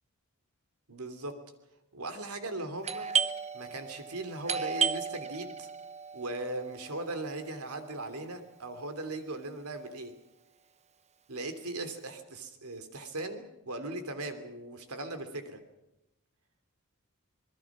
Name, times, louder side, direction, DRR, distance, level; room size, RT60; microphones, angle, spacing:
voice 1, 0.9-1.4 1.9-3.1 3.5-5.7 6.1-10.1 11.3-15.6, right 2 dB, 85° right, 8 dB, 3.1 m, -38 dB
Doorbell, 2.8-8.3, right 6 dB, 30° right, 0.9 m, -34 dB
26.5 x 20.5 x 6.1 m, 0.90 s
head